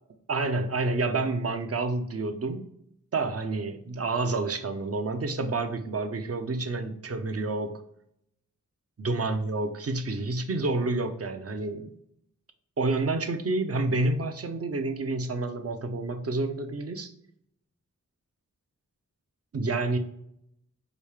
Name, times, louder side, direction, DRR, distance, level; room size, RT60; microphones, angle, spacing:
voice 1, 0.3-2.7 3.1-7.7 9.0-11.9 12.8-17.1 19.5-20.0, right 3 dB, 50° right, 8 dB, 0.6 m, -29 dB
5.0 x 2.7 x 3.3 m, 0.74 s
wide cardioid pair, 60°, 32 cm